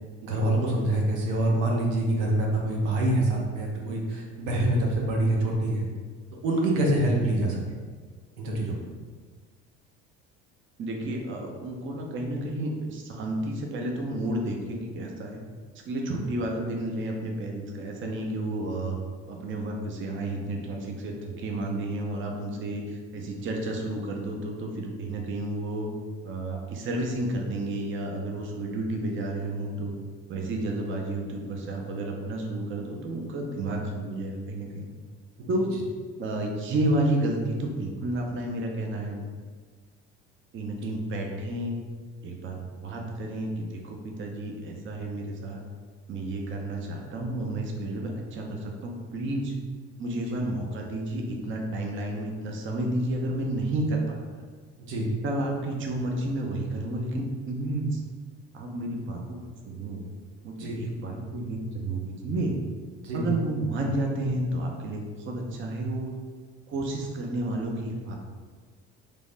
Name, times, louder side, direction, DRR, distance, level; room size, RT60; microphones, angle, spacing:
voice 1, 0.2-5.9 6.4-7.6 8.4-8.8 35.4-35.5 54.9-55.1 60.6-60.8 63.0-63.3, right 1 dB, 80° right, -1 dB, 0.6 m, -25 dB
voice 2, 10.8-15.4 15.8-19.0 19.2-25.9 26.2-29.9 30.3-34.9 35.5-35.8 36.2-39.2 40.5-41.8 42.2-45.6 46.1-49.5 50.0-54.2 55.2-58.0 58.5-59.4 59.7-60.1 60.4-62.6 63.1-66.1 66.7-68.1, right 1 dB, 35° right, 1 dB, 0.6 m, -31 dB
3.2 x 2.1 x 2.5 m, 1.5 s
hypercardioid pair, 65°, 34 cm